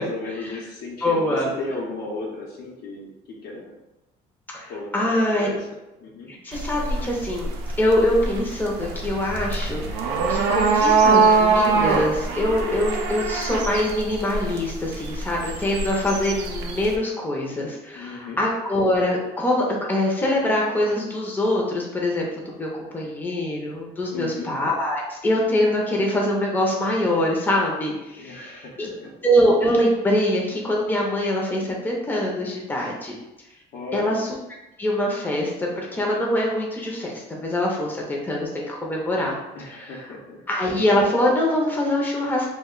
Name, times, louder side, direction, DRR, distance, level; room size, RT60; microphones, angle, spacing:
voice 1, 0.0-3.7 4.7-5.6 6.0-6.3 17.9-18.4 24.1-24.5 28.2-29.1 33.7-34.1 39.5-40.4, left 3 dB, 70° left, -2 dB, 0.8 m, -35 dB
voice 2, 1.0-1.5 4.5-5.5 6.3-7.5 7.8-28.9 29.2-33.2 33.9-34.3 34.8-39.4 39.7-40.0 40.5-42.5, left 1 dB, 10° left, -2 dB, 0.6 m, -24 dB
sound 1, 6.5-17.0, right 4 dB, 85° right, 0.4 m, -23 dB
2.4 x 2.2 x 3.7 m, 0.96 s
cardioid pair, 110°, 17 cm